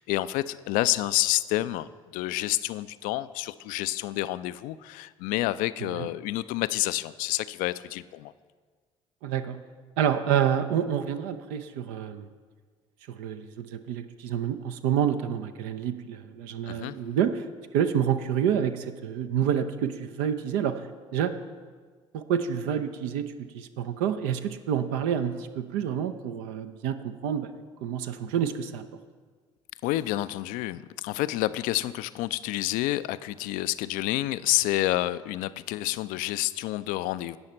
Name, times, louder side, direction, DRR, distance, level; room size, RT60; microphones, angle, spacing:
voice 1, 0.0-1.9 2.1-8.3 16.7-17.0 29.8-37.4, left 16 dB, 60° left, 15 dB, 0.4 m, -29 dB
voice 2, 9.2-9.6 10.0-12.3 13.1-17.5 17.7-20.8 21.1-21.3 22.1-27.5 27.8-28.8, right 8 dB, 65° right, 9 dB, 0.6 m, -28 dB
16.5 x 5.7 x 4.4 m, 1.5 s
figure-of-eight pair, 55°, 16 cm